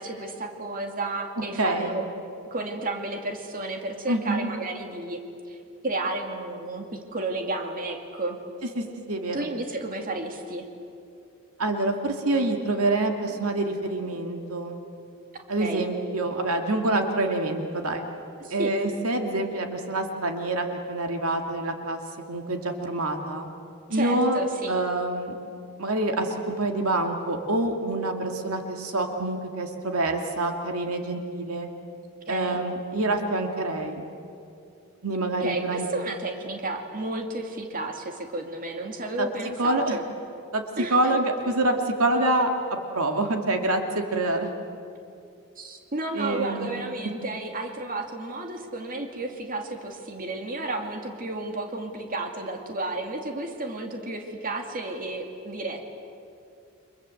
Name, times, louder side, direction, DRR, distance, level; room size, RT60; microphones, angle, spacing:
voice 1, 0.0-2.0 2.5-5.2 5.5-5.6 5.8-8.4 9.3-10.6 15.6-15.9 18.4-18.7 23.9-24.8 32.3-32.6 35.4-40.0 40.8-41.0 45.6-55.9, right 2 dB, 40° right, 3 dB, 2.4 m, -32 dB
voice 2, 1.6-2.0 4.1-4.5 8.8-9.5 11.6-14.8 15.5-18.1 18.5-22.0 22.3-23.5 23.9-24.4 24.7-25.3 25.8-31.7 32.3-34.1 35.0-35.9 39.2-39.3 39.6-40.0 40.5-40.6 40.9-42.5 42.9-44.5 46.1-46.7, right 2 dB, 75° right, 4 dB, 2.4 m, -26 dB
30.0 x 25.0 x 7.9 m, 2.6 s
head